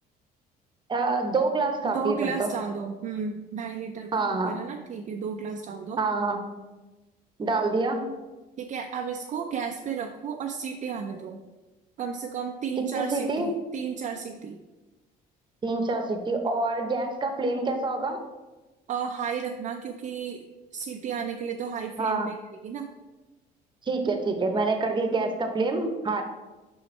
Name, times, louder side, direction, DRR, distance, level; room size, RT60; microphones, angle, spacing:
voice 1, 0.9-2.6 4.1-4.5 6.0-6.4 7.4-8.0 12.9-13.5 15.6-18.2 22.0-22.3 23.9-26.2, right 3 dB, 25° right, 5 dB, 0.9 m, -26 dB
voice 2, 1.8-6.0 8.6-11.4 12.0-14.6 18.9-20.4 20.7-22.9, right 6 dB, 45° right, 3 dB, 0.5 m, -33 dB
5.5 x 4.2 x 4.3 m, 1.2 s
cardioid pair, 110°, 17 cm